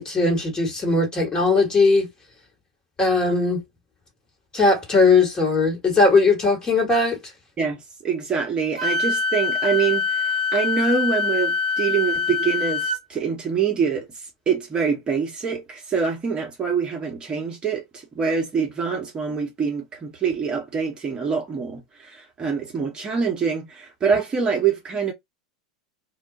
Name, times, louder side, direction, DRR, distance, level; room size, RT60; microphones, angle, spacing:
voice 1, 0.0-2.1 3.0-3.6 4.5-7.2, left 3 dB, 25° left, 1.4 m, -19 dB
voice 2, 7.6-14.1 14.5-25.1, right 6 dB, 25° right, 0.9 m, -25 dB
Wind instrument woodwind instrument, 8.8-13.0, left 5 dB, 80° right, 0.5 m, -24 dB
2.3 x 2.1 x 3.7 m
hypercardioid pair, 90°, 3 cm